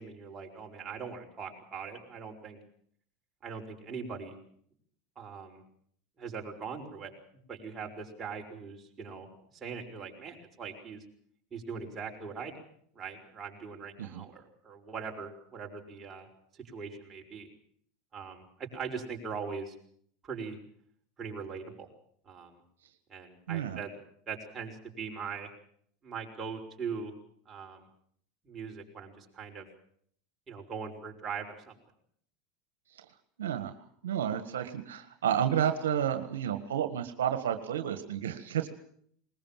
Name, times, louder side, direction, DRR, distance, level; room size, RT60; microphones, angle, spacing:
voice 1, 0.0-2.6 3.4-4.3 5.2-5.6 6.2-7.1 7.5-9.3 9.5-11.0 11.5-12.5 12.9-16.3 16.7-17.5 18.1-19.7 20.2-20.6 21.2-21.9 22.2-22.6 23.1-23.9 24.3-25.5 26.0-27.1 27.5-27.8 28.4-29.7 30.5-31.8, right 5 dB, 25° right, 1 dB, 5.9 m, -41 dB
voice 2, 23.5-23.8 33.0-33.1 33.4-33.7 34.0-38.7, right 9 dB, 85° right, 8 dB, 1.7 m, -31 dB
20.5 x 20.5 x 7.6 m, 0.64 s
hypercardioid pair, 100°, 0 cm